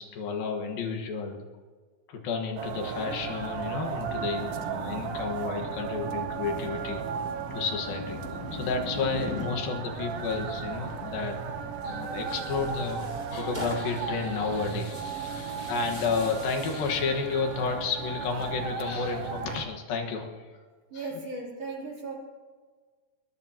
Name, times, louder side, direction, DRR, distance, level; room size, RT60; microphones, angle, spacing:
voice 1, 0.0-1.4 2.1-7.0 7.5-8.2 8.5-11.4 11.8-20.5 20.9-21.1, left 5 dB, 75° left, 3 dB, 3.3 m, -31 dB
sound 1, 2.6-19.7, right 6 dB, 75° right, 1.4 m, -35 dB
sound 2, 3.1-9.5, left 3 dB, 50° left, 4.9 m, -42 dB
Tearing, 11.8-17.1, equal, 10° right, 4.2 m, -43 dB
voice 2, 20.9-22.1, right 3 dB, 45° right, -3 dB, 4.3 m, -36 dB
22.0 x 21.5 x 3.0 m, 1.5 s
omnidirectional pair, 4.2 m